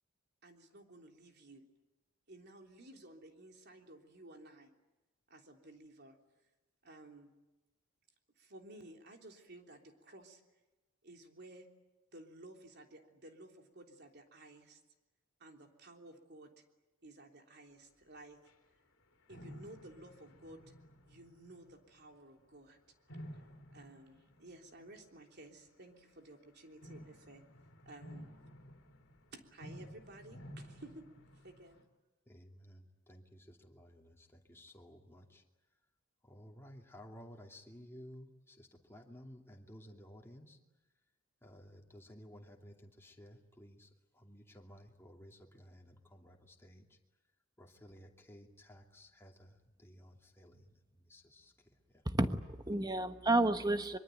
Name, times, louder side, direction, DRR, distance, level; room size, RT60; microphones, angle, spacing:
voice 1, 0.4-1.6 2.3-4.7 5.3-6.2 6.8-7.3 8.4-10.4 11.0-11.7 12.1-14.8 15.4-16.6 17.0-18.4 19.3-20.6 21.1-22.8 23.3-23.4 23.7-27.4 27.8-28.3 29.3-31.1 31.3-31.8, right 2 dB, 50° right, 3 dB, 3.4 m, -55 dB
sound 1, 18.5-18.6 19.3-22.1 23.1-25.2 26.8-31.8, equal, 70° left, 2.8 m, -53 dB
voice 2, 32.3-35.4 36.2-40.6 41.4-46.9 47.6-52.0, equal, 10° left, 1 dB, 2.7 m, -56 dB
voice 3, 52.0-54.0, right 2 dB, 20° right, 9 dB, 1.3 m, -31 dB
24.5 x 23.5 x 9.3 m, 1.1 s
head